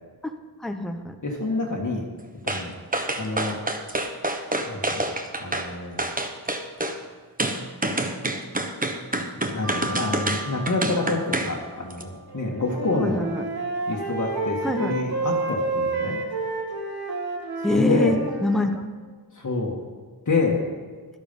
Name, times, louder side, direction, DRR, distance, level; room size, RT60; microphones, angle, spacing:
voice 1, 0.6-1.2 12.9-13.4 14.6-14.9 17.6-18.9, left 1 dB, ahead, 6 dB, 0.9 m, -25 dB
voice 2, 1.2-2.1 2.4-2.8 3.2-3.6 4.7-5.0 5.3-6.0 9.5-13.2 13.9-16.2 17.7-18.2 19.4-19.8 20.3-20.6, left 3 dB, 45° left, -2 dB, 1.8 m, -27 dB
sound 1, 2.5-2.7 2.9-5.7 6.0-7.0 7.4-11.5 11.9-12.0, right 2 dB, 20° right, 1.1 m, -27 dB
Mallet percussion, 9.6-12.4, right 2 dB, 40° right, 3.5 m, -39 dB
Wind instrument woodwind instrument, 12.3-18.8, right 3 dB, 65° right, 1.9 m, -29 dB
12.5 x 11.5 x 5.4 m, 1.5 s
wide cardioid pair, 80°, 40 cm